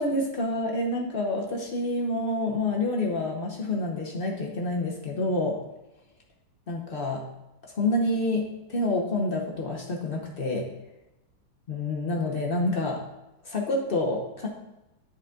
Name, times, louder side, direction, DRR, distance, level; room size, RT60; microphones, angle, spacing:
voice 1, 0.0-5.6 6.7-7.2 7.8-10.7 11.7-13.0 13.4-14.5, left 2 dB, 60° left, -1 dB, 0.5 m, -28 dB
9.3 x 5.0 x 3.7 m, 0.95 s
omnidirectional pair, 2.3 m